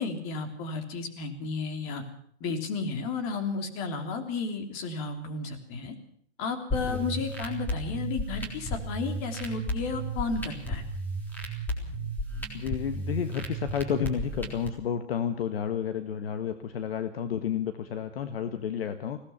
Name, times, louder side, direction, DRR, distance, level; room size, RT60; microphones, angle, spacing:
voice 1, 0.0-2.0 2.4-5.9 6.4-10.8, left 4 dB, 30° left, 7 dB, 3.3 m, -33 dB
sound 1, 6.7-14.7, right 1 dB, 5° left, 3.7 m, -34 dB
voice 2, 6.8-7.2 12.5-19.2, left 8 dB, 60° left, 9 dB, 1.6 m, -31 dB
20.5 x 17.0 x 7.2 m, 0.66 s
hypercardioid pair, 135°, 34 cm